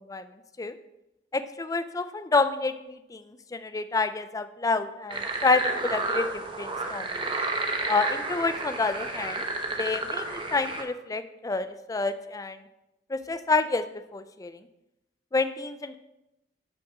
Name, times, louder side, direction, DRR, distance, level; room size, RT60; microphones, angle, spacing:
voice 1, 1.3-3.2 3.5-7.0 7.9-9.4 9.8-12.6 13.1-13.8 14.1-14.6 15.3-16.0, left 3 dB, 20° left, 11 dB, 0.4 m, -28 dB
sound 1, 5.1-10.8, right 3 dB, 30° right, 0.9 m, -31 dB
6.2 x 5.9 x 4.8 m, 0.92 s
head